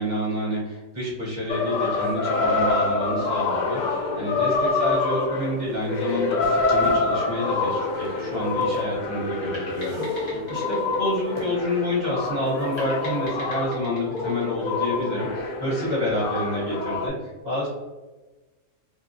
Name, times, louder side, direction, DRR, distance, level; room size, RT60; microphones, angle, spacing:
voice 1, 0.0-17.7, left 1 dB, 40° right, -7 dB, 0.9 m, -28 dB
sound 1, 1.5-17.1, left 3 dB, 80° left, 0.4 m, -26 dB
sound 2, 5.4-13.4, right 2 dB, 75° right, 0.9 m, -42 dB
sound 3, 9.5-12.1 12.8-15.3, left 1 dB, 35° left, 1.0 m, -42 dB
3.0 x 2.4 x 2.5 m, 1.2 s
omnidirectional pair, 1.3 m